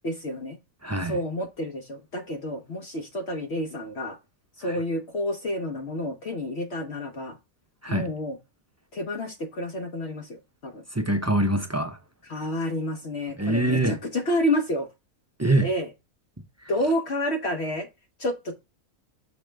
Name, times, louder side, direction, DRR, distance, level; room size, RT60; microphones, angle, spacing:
voice 1, 0.0-0.6 1.0-4.2 4.6-7.4 7.9-8.4 8.9-10.8 12.3-14.9 15.6-15.9 16.7-17.9 18.2-18.5, left 1 dB, 55° left, 1.0 m, -29 dB
voice 2, 0.8-1.2 4.6-4.8 7.8-8.1 10.9-12.0 13.4-14.0 15.4-15.7, right 1 dB, 20° right, 0.4 m, -24 dB
6.5 x 5.2 x 3.2 m
omnidirectional pair, 1.4 m